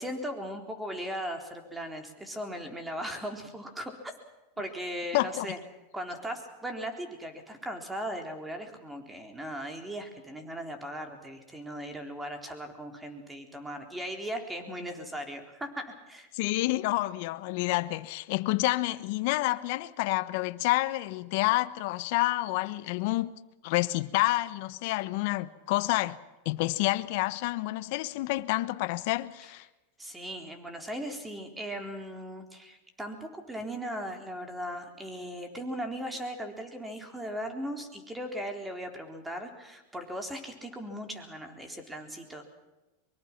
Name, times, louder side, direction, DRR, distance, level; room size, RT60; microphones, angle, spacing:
voice 1, 0.0-4.1 4.6-5.6 5.9-16.3 30.0-42.4, equal, 10° right, 3.8 m, -38 dB
voice 2, 5.1-5.6 16.3-23.3 23.6-26.2 26.4-29.7, left 19 dB, 60° left, 1.1 m, -28 dB
23.5 x 23.5 x 6.0 m
supercardioid pair, 130°, 0 cm